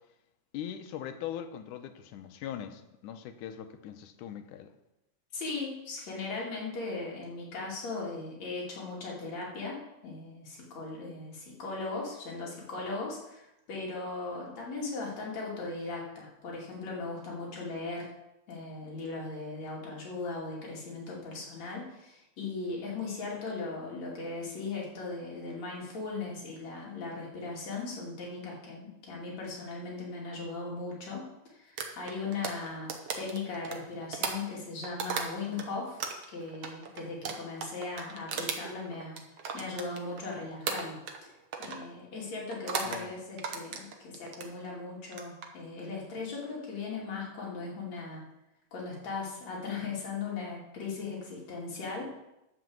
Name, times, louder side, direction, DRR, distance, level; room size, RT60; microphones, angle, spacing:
voice 1, 0.5-4.7 42.9-43.1, left 10 dB, 85° left, 9 dB, 2.4 m, -41 dB
voice 2, 5.3-9.8 10.0-18.1 18.5-31.2 31.5-36.0 36.3-39.2 39.5-41.0 41.6-48.3 48.7-52.0, left 3 dB, 60° left, -3 dB, 3.9 m, -38 dB
sound 1, 31.8-35.7 36.0-40.3 40.7-41.2 41.5-41.8 42.5-43.0 43.4-44.5 45.0-45.5, right 6 dB, 60° right, 1.9 m, -36 dB
12.0 x 5.3 x 7.9 m, 0.91 s
omnidirectional pair, 3.5 m